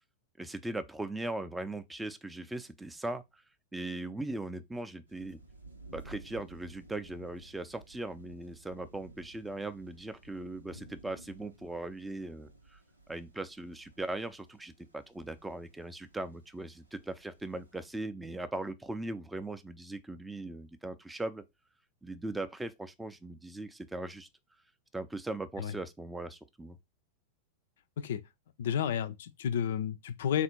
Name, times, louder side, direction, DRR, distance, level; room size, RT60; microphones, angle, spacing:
voice 1, 0.4-3.4 3.7-5.4 5.9-12.8 13.1-21.4 22.0-24.3 24.9-26.8, right 2 dB, 5° right, 0.4 m, -39 dB
sound 1, 5.1-18.0, right 2 dB, 85° right, 0.7 m, -55 dB
voice 2, 28.6-30.4, left 8 dB, 60° left, 0.4 m, -31 dB
3.6 x 2.5 x 4.3 m
figure-of-eight pair, 90°, 0 cm